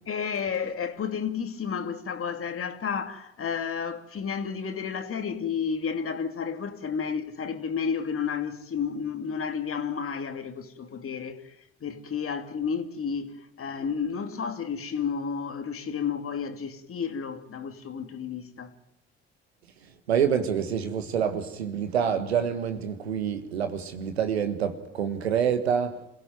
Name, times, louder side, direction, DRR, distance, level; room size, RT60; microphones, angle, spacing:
voice 1, 0.1-11.5 11.8-18.7, left 6 dB, 45° left, 2.6 m, -31 dB
voice 2, 20.1-26.1, right 8 dB, 90° right, 1.6 m, -27 dB
27.0 x 16.5 x 9.3 m
hypercardioid pair, 50°, 31 cm